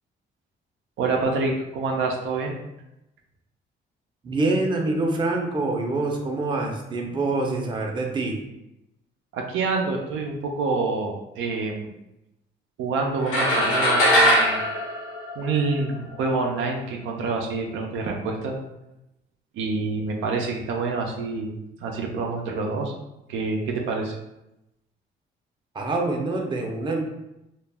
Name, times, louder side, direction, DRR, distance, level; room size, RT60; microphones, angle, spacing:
voice 1, 1.0-2.6 9.3-11.9 12.8-14.6 15.4-18.6 19.5-22.9 23.3-24.2, right 3 dB, 85° right, 1 dB, 0.5 m, -27 dB
voice 2, 4.2-8.4 25.7-27.0, right 2 dB, 25° right, 0 dB, 0.5 m, -25 dB
sound 1, 13.3-15.9, equal, 85° left, 0.8 m, -20 dB
2.2 x 2.0 x 3.3 m, 0.90 s
cardioid pair, 90°, 20 cm